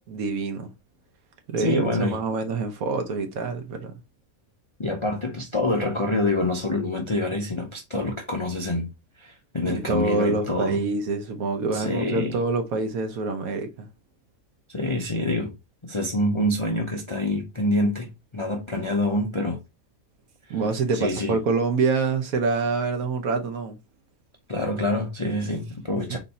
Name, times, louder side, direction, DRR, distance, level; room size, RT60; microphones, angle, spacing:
voice 1, 0.1-0.7 1.5-4.0 9.6-13.9 20.5-23.8, right 4 dB, 80° right, 1.3 m, -26 dB
voice 2, 1.6-2.2 4.8-8.9 9.2-10.8 11.7-12.4 14.7-15.5 15.8-19.6 20.9-21.4 24.5-26.2, left 1 dB, 45° left, 0.4 m, -26 dB
4.0 x 2.7 x 4.1 m
omnidirectional pair, 1.5 m